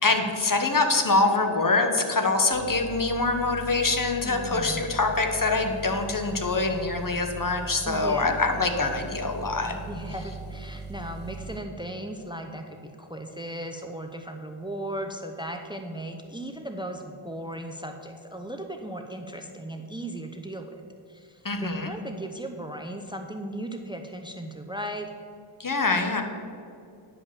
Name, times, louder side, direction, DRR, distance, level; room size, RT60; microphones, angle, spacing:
voice 1, 0.0-9.8 21.4-21.9 25.6-26.2, left 3 dB, 40° left, 5 dB, 1.2 m, -24 dB
sound 1, 2.5-11.6, right 3 dB, 25° right, 2.3 m, -40 dB
voice 2, 4.2-4.8 7.8-8.8 9.6-20.8 21.1-25.1, right 1 dB, 10° right, 5 dB, 0.8 m, -37 dB
10.5 x 5.1 x 7.3 m, 2.4 s
cardioid pair, 55°, 49 cm